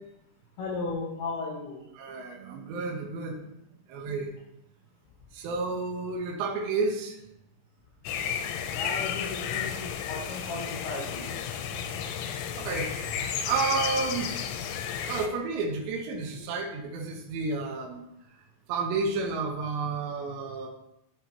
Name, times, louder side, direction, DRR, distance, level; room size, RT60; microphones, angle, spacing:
voice 1, 0.6-1.8 8.7-11.3, left 3 dB, 75° left, -4 dB, 3.6 m, -35 dB
voice 2, 1.9-3.4 3.9-4.3 5.3-7.1 12.6-12.9 13.5-14.3 15.1-18.0 18.7-20.7, right 4 dB, 75° right, 0 dB, 2.9 m, -31 dB
sound 1, 8.1-15.3, left 8 dB, 90° left, 3.3 m, -33 dB
12.5 x 5.6 x 3.0 m, 0.80 s
omnidirectional pair, 5.7 m